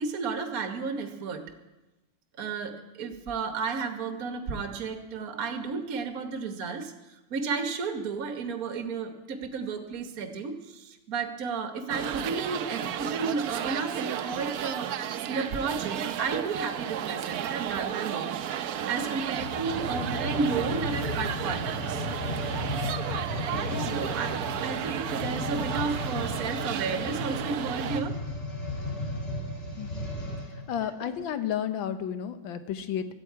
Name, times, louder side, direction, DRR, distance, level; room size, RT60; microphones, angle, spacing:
voice 1, 0.0-1.4 2.4-6.9 7.3-18.3 18.7-22.1 23.5-24.4 24.6-28.2 30.3-30.4, right 5 dB, 50° right, 5 dB, 1.6 m, -32 dB
sound 1, 11.9-28.0, right 9 dB, 65° right, 1.0 m, -33 dB
sound 2, 19.3-30.6 31.2-31.3, left 1 dB, 30° left, 3.1 m, -35 dB
voice 2, 23.7-24.0 29.8-30.1 30.7-33.1, left 9 dB, 80° left, 9 dB, 1.7 m, -32 dB
17.0 x 14.0 x 4.7 m, 1.1 s
omnidirectional pair, 2.1 m